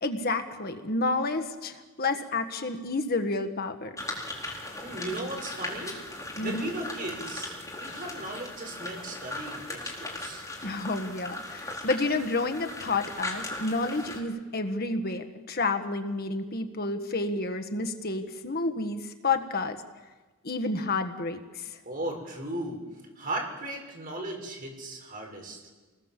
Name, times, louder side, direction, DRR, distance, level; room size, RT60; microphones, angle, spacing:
voice 1, 0.0-4.0 6.4-6.7 10.6-19.8 20.4-21.8, left 3 dB, 45° left, 7 dB, 1.5 m, -30 dB
sound 1, 4.0-14.2, left 2 dB, 15° left, 4.2 m, -38 dB
voice 2, 4.8-6.0 6.4-10.5 21.8-22.8 23.2-25.6, right 1 dB, 40° right, 1 dB, 6.3 m, -36 dB
28.5 x 20.5 x 7.5 m, 1.3 s
head